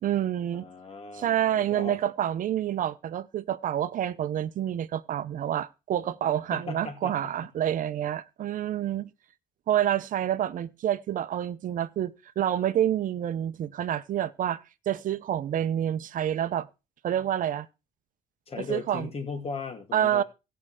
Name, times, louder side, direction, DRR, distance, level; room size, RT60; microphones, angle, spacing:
voice 1, 0.0-0.7 1.1-9.1 9.7-16.7 17.0-17.7 18.6-19.1 19.9-20.2, right 11 dB, 55° right, 0.7 m, -28 dB
voice 2, 0.5-2.0 6.5-7.2 18.5-20.2, left 4 dB, 35° left, 2.4 m, -37 dB
16.5 x 5.6 x 4.9 m
cardioid pair, 110°, 17 cm